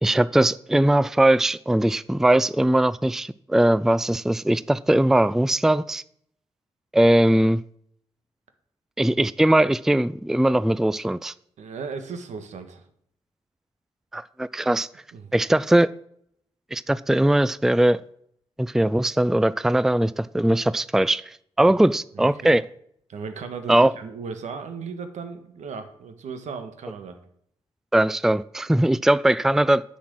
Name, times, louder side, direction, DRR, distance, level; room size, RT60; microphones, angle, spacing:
voice 1, 0.0-6.0 6.9-7.6 9.0-11.3 14.1-14.9 15.3-15.9 16.7-18.0 18.6-22.6 23.7-23.9 27.9-29.8, right 1 dB, 5° right, 18 dB, 0.4 m, -20 dB
voice 2, 11.6-12.8 15.1-15.3 22.1-22.5 23.1-27.2, right 5 dB, 75° right, 7 dB, 1.7 m, -36 dB
10.0 x 6.2 x 7.7 m, 0.68 s
supercardioid pair, 45°, 12 cm